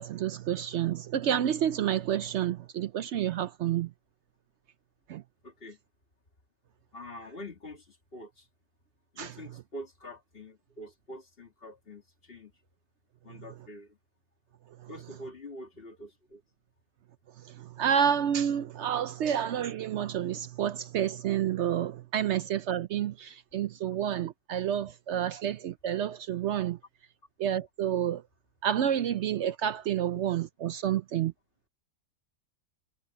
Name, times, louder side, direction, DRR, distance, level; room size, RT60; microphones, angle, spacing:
voice 1, 0.0-3.9 5.1-5.2 9.2-9.3 17.5-26.8 27.4-28.2 28.6-31.3, right 9 dB, 65° right, 0.8 m, -29 dB
voice 2, 5.4-5.8 6.9-8.5 9.1-12.5 13.2-14.0 14.9-16.4, left 1 dB, 45° left, 2.4 m, -45 dB
omnidirectional pair, 1.4 m